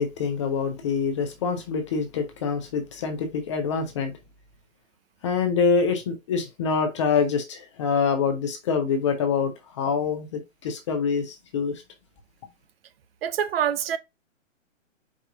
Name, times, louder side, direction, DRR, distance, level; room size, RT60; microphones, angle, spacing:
voice 1, 0.0-4.1 5.2-11.8, left 5 dB, 25° left, 0.5 m, -25 dB
voice 2, 13.2-14.0, right 9 dB, 50° right, 0.5 m, -25 dB
4.8 x 2.4 x 3.6 m
hypercardioid pair, 140°, 39 cm